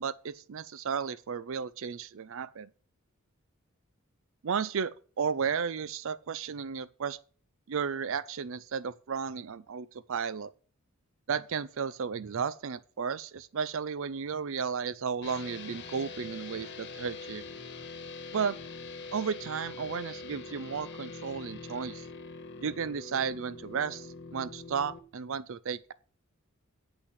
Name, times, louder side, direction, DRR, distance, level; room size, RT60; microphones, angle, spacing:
voice 1, 0.0-2.7 4.4-7.2 7.7-10.5 11.3-17.4 18.3-18.6 19.1-22.1 22.6-25.9, right 6 dB, 65° right, 0.5 m, -34 dB
sound 1, 15.2-25.0, left 3 dB, 55° left, 1.3 m, -43 dB
8.4 x 5.9 x 8.1 m
head